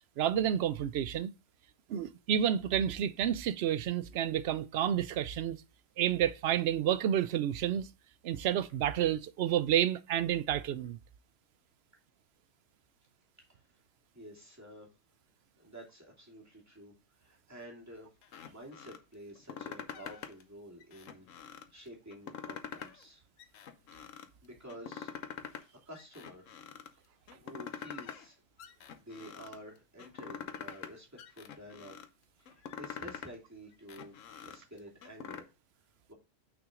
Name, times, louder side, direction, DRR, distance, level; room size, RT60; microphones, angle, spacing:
voice 1, 0.2-1.3 1.9-5.6 6.0-7.9 8.2-11.0, right 10 dB, 65° right, 0.7 m, -30 dB
voice 2, 14.1-14.9 15.6-18.1 18.5-23.2 24.4-25.3 25.9-26.6 26.9-28.4 28.9-32.0 32.4-35.5 36.1-36.2, equal, 10° right, 2.7 m, -51 dB
sound 1, 18.2-19.0 19.4-20.4 20.8-21.7 22.1-23.1 23.4-24.3 24.7-25.6 25.9-26.9 27.3-28.3 28.6-29.6 30.0-30.9 31.2-32.1 32.5-33.3 33.7-35.4, left 7 dB, 80° left, 1.2 m, -45 dB
6.2 x 6.0 x 3.7 m
omnidirectional pair, 1.3 m